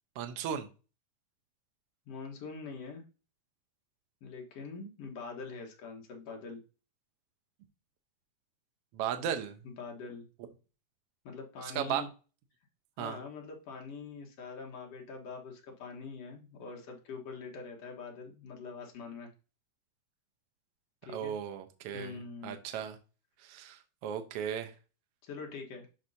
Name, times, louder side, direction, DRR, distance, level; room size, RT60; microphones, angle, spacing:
voice 1, 0.2-0.7 8.9-9.5 11.6-12.0 13.0-13.2 21.1-23.0 23.4-24.7, right 9 dB, 80° right, 7 dB, 1.3 m, -36 dB
voice 2, 2.1-3.0 4.2-6.6 9.2-9.3 9.6-10.3 11.2-12.1 13.0-19.3 21.0-21.4 21.9-22.6 25.2-25.9, left 4 dB, 55° left, 0 dB, 2.1 m, -44 dB
12.0 x 4.5 x 2.7 m, 0.33 s
omnidirectional pair, 3.9 m